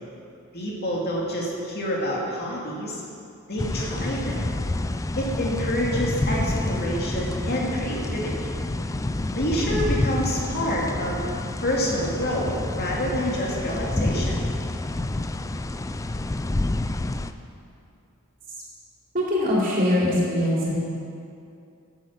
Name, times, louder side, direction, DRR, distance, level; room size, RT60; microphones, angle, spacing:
voice 1, 0.5-3.0 3.5-4.5 5.2-8.5 9.3-11.2 11.6-14.4, equal, 50° left, -3 dB, 2.4 m, -28 dB
sound 1, 3.6-17.3, left 2 dB, 15° left, 0.4 m, -28 dB
voice 2, 19.1-20.7, left 1 dB, 40° right, -5 dB, 3.5 m, -22 dB
10.5 x 9.8 x 7.4 m, 2.5 s
head